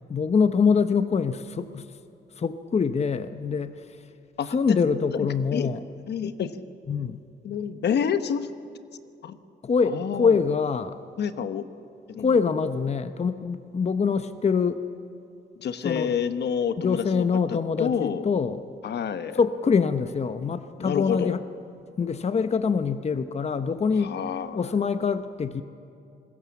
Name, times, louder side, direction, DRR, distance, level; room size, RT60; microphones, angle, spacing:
voice 1, 0.1-1.9 2.4-3.8 4.5-5.8 6.9-7.2 9.6-11.0 12.2-14.8 15.8-16.1 16.8-18.6 19.3-21.4 22.0-24.2 24.5-25.6, left 5 dB, 35° left, 10 dB, 0.8 m, -24 dB
voice 2, 5.1-5.7 6.1-6.6 7.4-8.5 9.2-9.4 9.8-10.4 11.2-11.7 12.1-12.3 15.6-17.2 17.5-18.3 18.8-19.4 20.8-21.3 24.0-24.7, left 7 dB, 65° left, 11 dB, 1.1 m, -28 dB
26.5 x 20.5 x 7.2 m, 2.6 s
cardioid pair, 95°, 19 cm